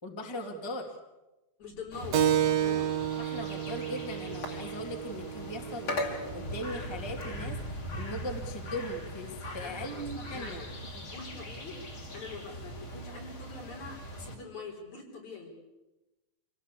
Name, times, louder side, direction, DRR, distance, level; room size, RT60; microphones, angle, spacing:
voice 1, 0.0-0.9 3.2-10.6, equal, 10° left, 2 dB, 2.2 m, -39 dB
voice 2, 1.6-2.2 2.5-2.9 9.4-11.8 12.1-15.5, left 4 dB, 65° left, 0 dB, 6.0 m, -44 dB
sound 1, 1.6-10.4, left 2 dB, 25° left, 1.8 m, -54 dB
sound 2, 1.9-14.3, left 1 dB, 40° left, 4.0 m, -40 dB
Keyboard (musical), 2.1-7.2, right 10 dB, 65° right, 2.1 m, -31 dB
27.0 x 17.5 x 8.5 m, 1.0 s
omnidirectional pair, 3.6 m